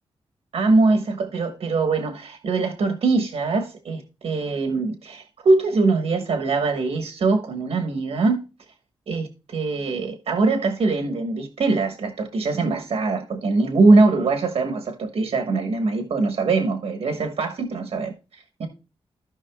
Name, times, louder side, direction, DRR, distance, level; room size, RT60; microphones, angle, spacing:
voice 1, 0.5-8.4 9.1-18.7, right 3 dB, 80° right, 1.3 m, -22 dB
15.0 x 5.5 x 2.3 m
cardioid pair, 85°, 10 cm